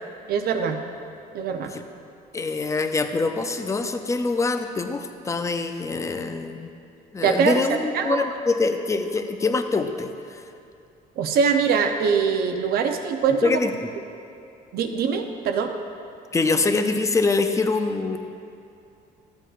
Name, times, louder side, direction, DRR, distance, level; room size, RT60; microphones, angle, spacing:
voice 1, 0.3-0.8 1.3-1.7 7.2-7.6 7.9-8.2 11.2-13.6 14.7-15.8, right 6 dB, 65° right, 5 dB, 0.7 m, -23 dB
voice 2, 2.3-6.7 7.1-10.4 13.4-13.9 16.3-18.2, left 3 dB, 20° left, 7 dB, 0.5 m, -24 dB
13.5 x 7.8 x 2.5 m, 2.7 s
cardioid pair, 110°, 17 cm